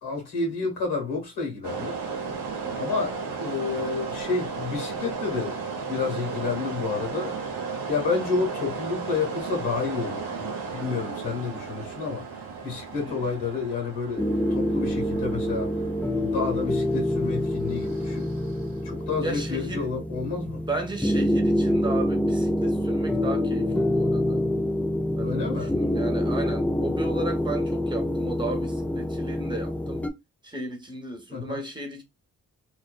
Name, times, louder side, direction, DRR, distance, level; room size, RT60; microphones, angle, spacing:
voice 1, 0.0-2.0 2.7-5.6 5.9-7.3 7.9-12.3 12.6-15.7 16.2-18.3 18.8-20.6 25.2-25.7 31.3-31.6, left 4 dB, 90° left, 1.2 m, -30 dB
sound 1, 1.6-19.3, right 5 dB, 90° right, 0.7 m, -35 dB
sound 2, 14.2-30.1, left 1 dB, 5° left, 0.3 m, -26 dB
voice 2, 19.2-19.9 20.7-24.4 25.2-30.0 30.4-32.0, right 2 dB, 10° right, 1.0 m, -35 dB
2.5 x 2.2 x 2.3 m
supercardioid pair, 45°, 40 cm